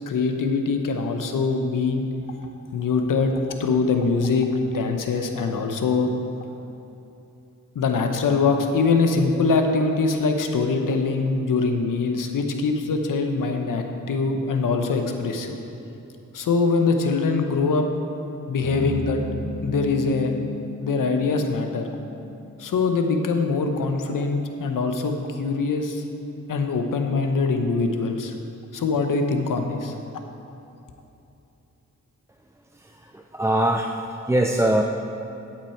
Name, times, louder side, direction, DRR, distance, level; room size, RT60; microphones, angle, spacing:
voice 1, 0.1-2.1 2.7-6.1 7.7-15.6 16.3-17.9 18.5-19.2 19.6-20.3 20.8-21.9 22.6-26.0 26.5-28.3 28.7-29.9, left 4 dB, 85° left, 5 dB, 0.9 m, -23 dB
sound 1, 18.6-23.0, left 2 dB, 50° left, 1.8 m, -35 dB
voice 2, 32.7-33.9 34.3-34.8, right 1 dB, 10° right, 2 dB, 0.5 m, -22 dB
13.0 x 6.0 x 4.5 m, 2.8 s
cardioid pair, 65°, 32 cm